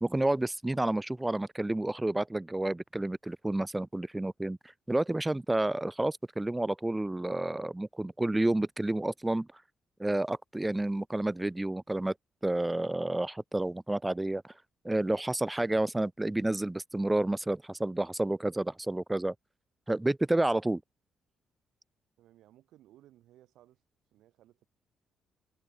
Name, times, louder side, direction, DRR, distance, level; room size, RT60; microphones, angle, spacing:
voice 1, 0.0-4.6 4.9-9.5 10.0-12.1 12.4-14.5 14.8-19.3 19.9-20.8, right 1 dB, 10° right, 0.3 m, -30 dB
voice 2, 22.2-23.8 24.1-24.6, right 13 dB, 85° right, 6.4 m, -60 dB
cardioid pair, 90°, 0 cm